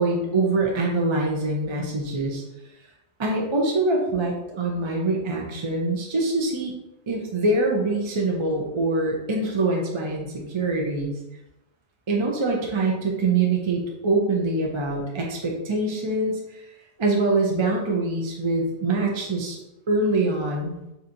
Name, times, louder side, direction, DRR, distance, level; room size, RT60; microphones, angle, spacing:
voice 1, 0.0-2.4 3.2-6.7 7.1-11.1 12.1-16.6 17.0-19.6 19.9-20.8, right 2 dB, 40° right, 0 dB, 0.4 m, -24 dB
5.6 x 2.8 x 2.5 m, 0.92 s
omnidirectional pair, 1.2 m